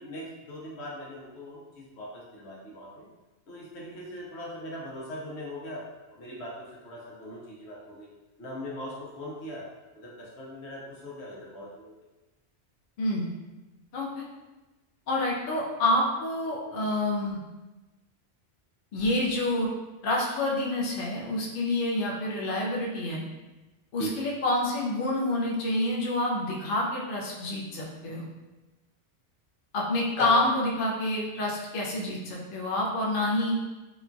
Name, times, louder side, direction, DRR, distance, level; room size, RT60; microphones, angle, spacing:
voice 1, 0.0-3.1 3.5-8.1 8.4-9.7 9.9-12.1 24.0-24.1 30.2-30.3, equal, 80° left, -4 dB, 1.0 m, -40 dB
voice 2, 13.0-13.3 13.9-14.2 15.1-17.4 18.9-19.7 20.0-23.3 23.9-28.3 29.7-33.6, left 1 dB, 60° left, -3 dB, 0.6 m, -28 dB
3.0 x 2.2 x 2.5 m, 1.1 s
omnidirectional pair, 1.1 m